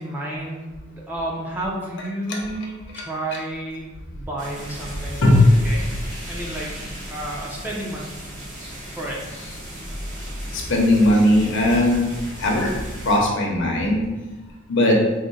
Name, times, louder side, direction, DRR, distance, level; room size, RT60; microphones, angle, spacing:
voice 1, 0.0-5.9 6.2-6.8 7.1-8.1 9.0-9.2, right 1 dB, 10° right, -4 dB, 0.5 m, -31 dB
sound 1, 4.4-13.2, equal, 40° right, 0.8 m, -35 dB
voice 2, 10.5-12.1 12.4-12.8 13.0-14.0 14.7-15.0, left 1 dB, 65° left, -1 dB, 0.7 m, -18 dB
3.7 x 2.1 x 3.9 m, 1.2 s
head